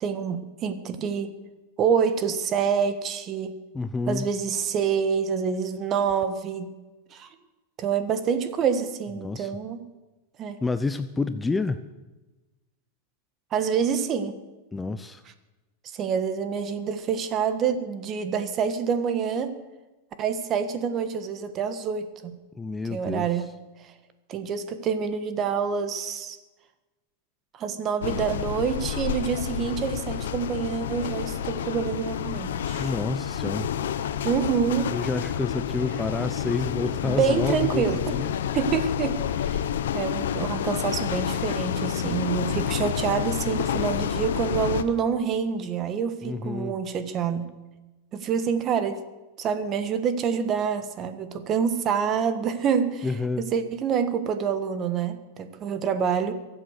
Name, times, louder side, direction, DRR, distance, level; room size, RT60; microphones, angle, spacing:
voice 1, 0.0-1.4 1.8-3.5 4.1-6.7 7.1-7.3 7.8-9.8 10.4-10.6 13.5-14.4 15.9-19.5 20.2-22.4 22.9-23.5 23.8-23.9 24.3-26.4 27.5-32.9 34.2-34.9 37.0-38.0 38.5-39.6 39.9-47.5 48.1-49.0 49.4-53.1 53.4-56.3, right 7 dB, 30° right, 10 dB, 1.4 m, -27 dB
voice 2, 3.7-4.3 9.2-9.5 10.6-11.8 14.7-15.2 22.5-23.5 32.8-33.7 34.9-38.3 46.2-46.8 53.0-53.4, left 3 dB, 10° left, 11 dB, 0.6 m, -29 dB
sound 1, 28.0-44.8, left 9 dB, 85° left, 0.9 m, -29 dB
23.0 x 7.9 x 6.6 m, 1.1 s
supercardioid pair, 135°, 0 cm